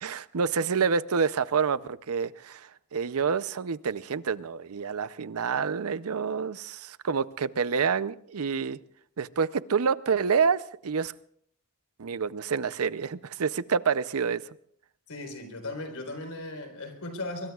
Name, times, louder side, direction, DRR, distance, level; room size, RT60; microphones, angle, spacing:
voice 1, 0.0-8.8 9.2-11.1 12.0-14.4, right 6 dB, 80° right, 16 dB, 0.6 m, -28 dB
voice 2, 15.1-17.5, left 2 dB, 80° left, 5 dB, 4.2 m, -37 dB
24.5 x 23.0 x 2.4 m, 0.64 s
head